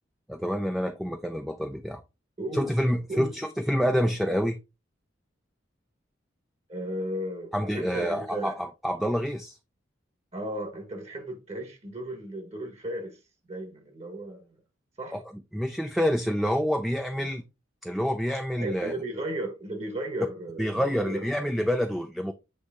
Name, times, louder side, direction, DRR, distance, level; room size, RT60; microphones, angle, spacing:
voice 1, 0.3-2.0 2.5-4.6 7.5-9.6 15.1-15.2 15.5-17.4 17.8-18.9 20.6-22.3, equal, ahead, 0.4 m, -27 dB
voice 2, 2.4-2.7 3.1-3.3 6.7-8.6 10.3-13.2 13.5-14.5 15.0-15.2 17.2-17.3 18.6-21.3, right 1 dB, 35° right, 1.3 m, -35 dB
8.0 x 3.2 x 3.6 m
head